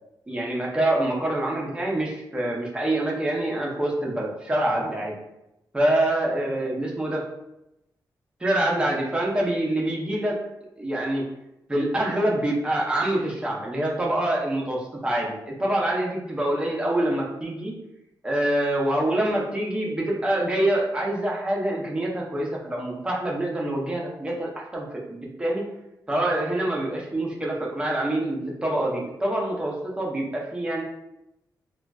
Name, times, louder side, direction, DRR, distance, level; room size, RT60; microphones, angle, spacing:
voice 1, 0.3-5.1 5.7-7.2 8.4-10.4 10.8-11.2 11.7-17.7 18.2-25.6 26.1-30.8, right 1 dB, 15° right, -2 dB, 0.6 m, -25 dB
3.7 x 2.2 x 2.2 m, 0.89 s
wide cardioid pair, 140°, 7 cm